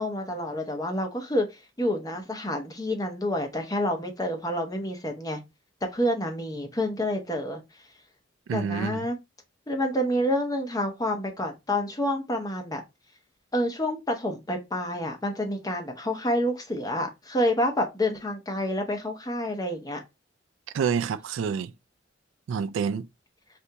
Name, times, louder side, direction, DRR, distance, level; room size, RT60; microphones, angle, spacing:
voice 1, 0.0-1.5 1.8-5.4 5.8-7.6 8.5-9.2 9.7-12.8 13.5-20.0, left 1 dB, 20° left, 0.7 m, -28 dB
voice 2, 8.5-9.1 20.7-21.7 22.5-23.1, right 6 dB, 80° right, 0.3 m, -28 dB
2.8 x 2.5 x 3.3 m
head